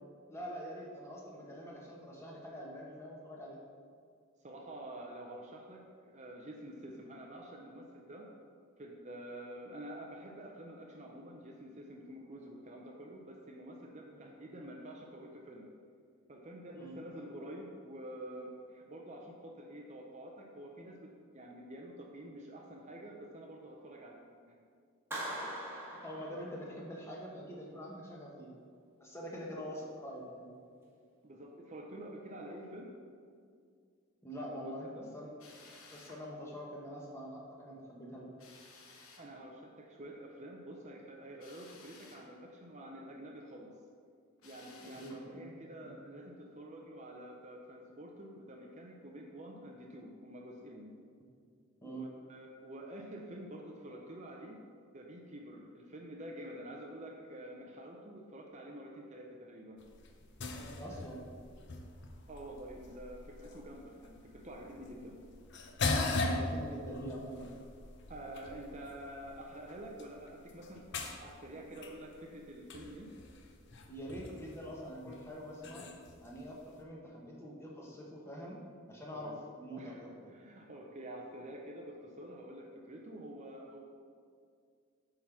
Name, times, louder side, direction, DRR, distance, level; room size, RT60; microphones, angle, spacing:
voice 1, 0.3-3.6 14.1-14.3 16.7-17.0 26.0-28.5 29.0-30.5 34.2-35.3 35.9-38.3 45.0-45.5 45.8-45.9 51.8-52.1 60.6-61.2 66.0-67.5 73.9-75.9 76.2-78.6 78.9-80.1, equal, 10° left, -4 dB, 1.2 m, -45 dB
voice 2, 4.4-8.3 8.8-15.7 16.3-24.5 29.6-29.7 31.2-32.9 34.3-35.1 39.2-43.7 44.4-50.9 51.8-54.6 54.9-59.8 62.3-65.2 68.1-73.1 79.1-79.4 79.8-83.8, right 1 dB, 35° right, 0 dB, 0.6 m, -48 dB
Clapping, 25.1-27.0, right 1 dB, 10° right, 1.4 m, -42 dB
Drill, 35.4-36.2 38.4-39.3 41.4-42.3 44.4-45.2, left 3 dB, 80° left, 1.1 m, -56 dB
sound 1, 59.8-76.8, left 2 dB, 55° left, 0.7 m, -41 dB
8.4 x 3.8 x 5.9 m, 2.2 s
head